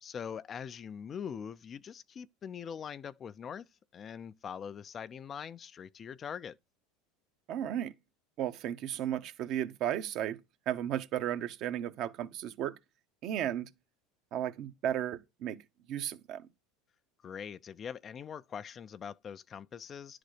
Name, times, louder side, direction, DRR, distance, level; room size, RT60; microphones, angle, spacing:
voice 1, 0.0-6.6 17.2-20.2, left 7 dB, 30° left, 0.4 m, -43 dB
voice 2, 7.5-7.9 8.4-10.4 10.7-12.8 13.2-13.7 14.3-15.6 15.9-16.5, right 11 dB, 55° right, 0.9 m, -34 dB
10.0 x 3.9 x 4.9 m
supercardioid pair, 115°, 0 cm